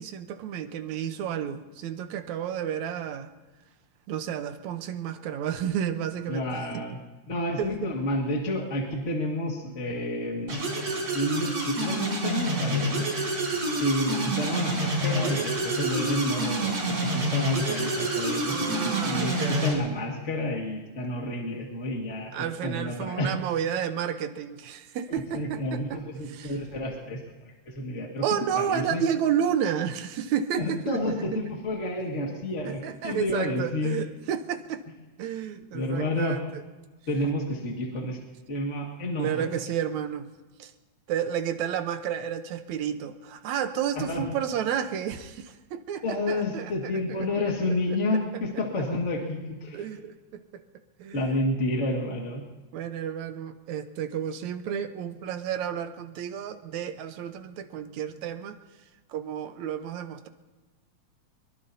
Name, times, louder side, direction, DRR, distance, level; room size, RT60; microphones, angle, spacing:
voice 1, 0.0-3.3 4.1-6.8 7.6-7.9 18.5-19.7 22.3-26.0 26.3-26.6 28.2-31.4 32.7-34.8 35.2-36.6 39.2-40.3 40.6-40.7 41.1-48.0 48.3-48.4 49.6-50.6 51.0-51.4 52.7-58.6 59.1-60.3, right 9 dB, 75° right, 9 dB, 2.2 m, -31 dB
voice 2, 6.3-7.0 7.3-10.6 11.1-13.0 13.8-23.3 25.1-28.2 28.5-29.0 30.6-34.0 35.7-36.4 37.1-38.2 38.5-39.4 43.9-44.3 46.0-49.8 51.1-52.4, left 1 dB, 30° left, -1 dB, 1.8 m, -30 dB
sound 1, 10.5-19.7, right 1 dB, 60° right, 5.6 m, -28 dB
23.0 x 22.0 x 2.7 m, 1.3 s
omnidirectional pair, 3.4 m